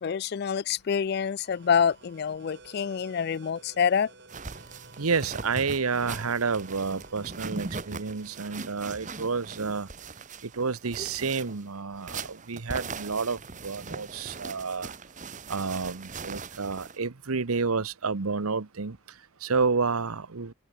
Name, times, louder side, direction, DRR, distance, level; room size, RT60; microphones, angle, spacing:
voice 1, 0.0-4.1, left 7 dB, 50° left, 0.3 m, -26 dB
sound 1, 1.4-12.8, right 3 dB, 50° right, 6.4 m, -54 dB
sound 2, 4.3-17.0, right 4 dB, 35° right, 1.2 m, -40 dB
voice 2, 5.0-9.9 10.5-14.9 15.5-19.0 19.4-20.5, right 4 dB, 85° right, 1.0 m, -30 dB
open air
head